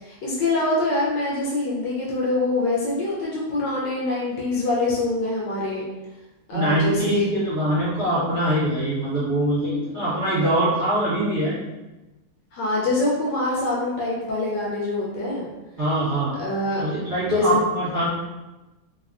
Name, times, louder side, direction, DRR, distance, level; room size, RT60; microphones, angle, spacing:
voice 1, 0.0-5.8 6.5-7.3 12.5-15.5 16.4-16.8 17.2-17.6, left 2 dB, 70° left, -5 dB, 1.2 m, -24 dB
voice 2, 6.5-11.6 15.8-16.3 16.8-18.0, right 1 dB, 50° right, -12 dB, 0.9 m, -23 dB
3.3 x 2.1 x 2.4 m, 1.1 s
omnidirectional pair, 2.2 m